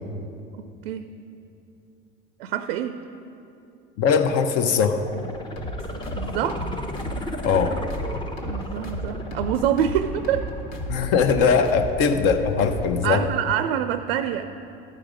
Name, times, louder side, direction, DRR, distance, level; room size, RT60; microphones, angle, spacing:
voice 1, 0.5-1.1 2.4-3.0 6.2-6.6 8.4-10.5 13.0-14.5, right 9 dB, 75° right, 10 dB, 0.5 m, -26 dB
voice 2, 4.0-5.0 7.4-7.8 10.9-13.2, left 6 dB, 50° left, 8 dB, 0.8 m, -20 dB
sound 1, 4.9-11.8 12.2-12.3, left 1 dB, 15° left, 0.7 m, -36 dB
sound 2, 5.6-13.1, right 1 dB, 70° left, 1.7 m, -34 dB
13.5 x 4.8 x 5.1 m, 2.8 s
hypercardioid pair, 75°, 31 cm